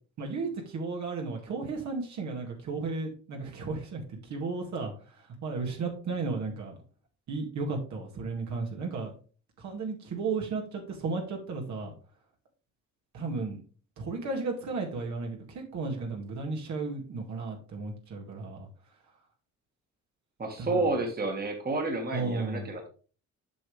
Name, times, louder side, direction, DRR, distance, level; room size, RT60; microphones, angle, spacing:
voice 1, 0.2-6.7 7.3-9.1 9.6-11.9 13.1-13.6 14.0-18.7 20.6-21.0 22.1-22.7, right 4 dB, 70° right, 0 dB, 2.1 m, -34 dB
voice 2, 20.4-22.9, right 2 dB, 30° right, 3 dB, 1.7 m, -30 dB
7.7 x 5.3 x 3.2 m, 0.38 s
cardioid pair, 90°, 30 cm